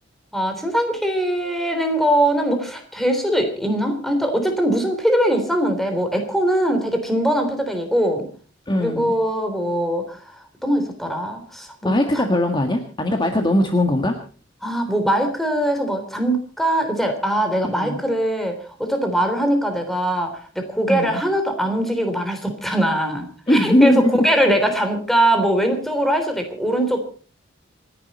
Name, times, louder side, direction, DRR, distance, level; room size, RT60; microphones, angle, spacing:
voice 1, 0.3-8.3 8.8-12.3 14.6-27.0, right 1 dB, ahead, 5 dB, 3.5 m, -21 dB
voice 2, 8.7-9.1 11.8-14.2 17.6-18.0 20.9-21.2 23.5-24.2, left 1 dB, 25° left, 4 dB, 1.6 m, -19 dB
28.0 x 11.0 x 4.3 m, 0.41 s
head